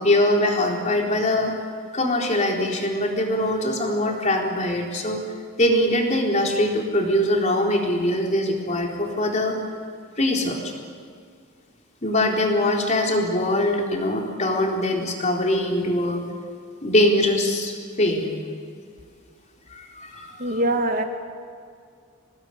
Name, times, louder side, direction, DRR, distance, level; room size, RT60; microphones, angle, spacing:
voice 1, 0.0-1.5 1.9-5.2 5.6-9.5 10.2-10.6 12.0-16.2 16.8-18.3 19.7-20.6, left 1 dB, 35° left, 1 dB, 4.1 m, -22 dB
voice 2, 20.4-21.0, right 1 dB, 40° right, 5 dB, 2.3 m, -22 dB
26.0 x 19.0 x 10.0 m, 2.2 s
head